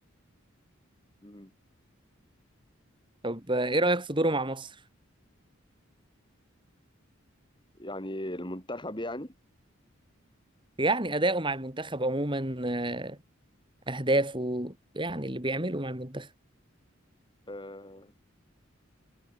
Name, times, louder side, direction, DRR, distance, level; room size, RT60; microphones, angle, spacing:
voice 1, 3.2-4.7 10.8-13.2 13.9-16.3, right 2 dB, 25° right, 4.4 m, -28 dB
voice 2, 7.8-9.3 17.5-18.1, left 1 dB, 25° left, 5.5 m, -37 dB
head